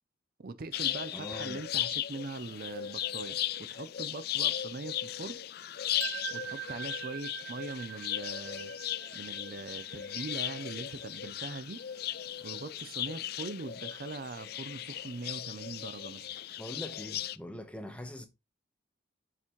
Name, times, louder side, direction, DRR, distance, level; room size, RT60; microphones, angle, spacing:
voice 1, 0.4-5.4 6.3-8.7 9.1-11.8 12.4-16.3, right 3 dB, 50° right, 0.6 m, -41 dB
sound 1, 0.7-17.4, left 12 dB, 50° left, 0.4 m, -37 dB
voice 2, 1.1-1.6 16.6-18.3, left 1 dB, 5° left, 1.1 m, -42 dB
sound 2, 6.0-11.9, right 13 dB, 90° right, 0.7 m, -44 dB
6.8 x 6.0 x 3.2 m
head